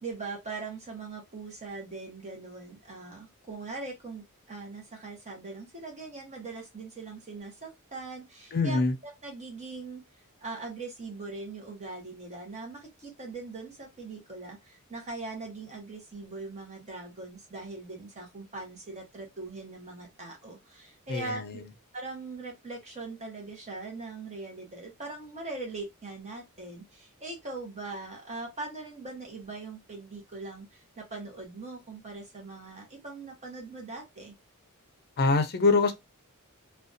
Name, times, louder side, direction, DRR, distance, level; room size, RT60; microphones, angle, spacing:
voice 1, 0.0-10.0 10.4-21.6 21.9-34.3, right 3 dB, 30° right, 0.8 m, -41 dB
voice 2, 8.5-8.9 21.1-21.4 35.2-35.9, left 3 dB, 45° left, 0.5 m, -24 dB
2.5 x 2.2 x 2.5 m
head